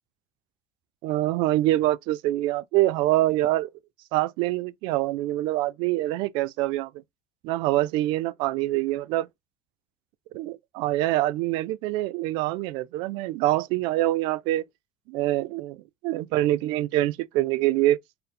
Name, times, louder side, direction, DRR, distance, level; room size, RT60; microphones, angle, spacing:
voice 1, 1.0-3.7 4.1-6.9 7.4-9.3 10.3-14.6 15.1-18.0, right 16 dB, 75° right, 0.4 m, -25 dB
3.9 x 2.0 x 4.2 m
cardioid pair, 160°, 8 cm